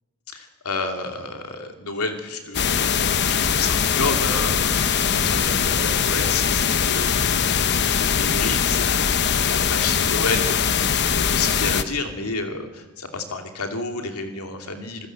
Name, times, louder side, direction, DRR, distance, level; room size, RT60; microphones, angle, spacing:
voice 1, 0.3-15.1, left 3 dB, 80° left, 4 dB, 2.8 m, -31 dB
sound 1, 2.5-11.8, left 7 dB, 50° left, 0.9 m, -21 dB
26.5 x 14.5 x 7.7 m, 1.2 s
head